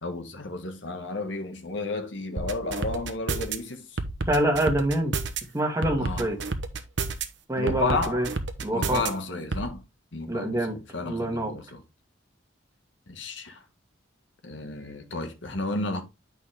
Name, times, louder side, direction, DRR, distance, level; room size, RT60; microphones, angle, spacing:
voice 1, 0.0-4.0 6.0-6.3 7.6-8.3 8.7-9.8 10.1-11.8 13.1-13.6 14.4-16.0, left 3 dB, 70° left, 1.5 m, -32 dB
sound 1, 2.4-3.6 4.0-5.4 5.8-7.2 7.7-9.1 9.5-9.7, right 3 dB, 65° right, 1.0 m, -29 dB
voice 2, 4.2-5.1 5.5-6.4 7.5-8.3 8.6-9.0 10.3-10.8 11.0-11.5, right 1 dB, 15° right, 1.8 m, -26 dB
8.6 x 5.3 x 3.3 m
head